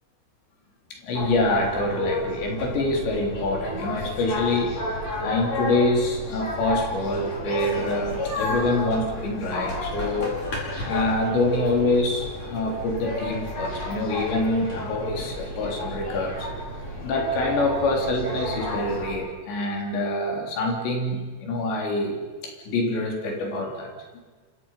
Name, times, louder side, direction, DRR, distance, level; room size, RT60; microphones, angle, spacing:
voice 1, 0.9-16.5 17.0-23.9, left 2 dB, 85° left, 1 dB, 5.9 m, -26 dB
sound 1, 1.1-19.1, left 1 dB, 40° left, 6.2 m, -31 dB
28.5 x 26.5 x 5.8 m, 1.4 s
omnidirectional pair, 4.9 m